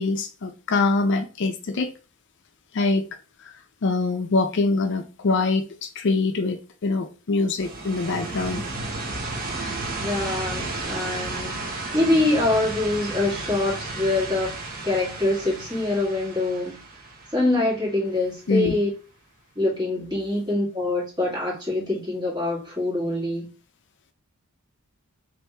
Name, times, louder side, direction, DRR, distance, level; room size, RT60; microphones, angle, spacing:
voice 1, 0.0-1.9 2.7-3.0 3.8-8.6 18.5-18.7, left 3 dB, 55° left, 0.4 m, -24 dB
sound 1, 7.6-18.3, right 2 dB, 40° right, 0.8 m, -33 dB
voice 2, 10.0-14.6 14.8-16.8 17.3-18.9 19.6-23.5, left 2 dB, 20° right, 1.8 m, -24 dB
3.3 x 2.6 x 4.3 m
head